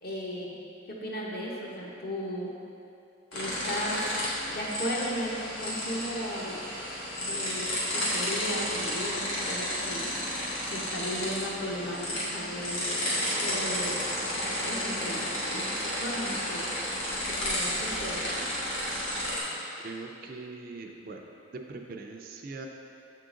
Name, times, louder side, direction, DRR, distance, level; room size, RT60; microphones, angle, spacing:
voice 1, 0.0-0.5 0.9-2.5 3.3-4.2 4.5-5.3 5.6-6.6 7.2-7.6 7.9-10.1 10.7-12.9 13.4-14.0 14.3-16.7 17.4-18.5, equal, 50° left, -3 dB, 0.8 m, -36 dB
sound 1, 3.3-19.4, left 1 dB, 85° left, 1.4 m, -32 dB
voice 2, 19.8-21.2 21.5-22.7, right 3 dB, 45° right, 2 dB, 0.4 m, -41 dB
6.9 x 3.8 x 3.7 m, 2.7 s
head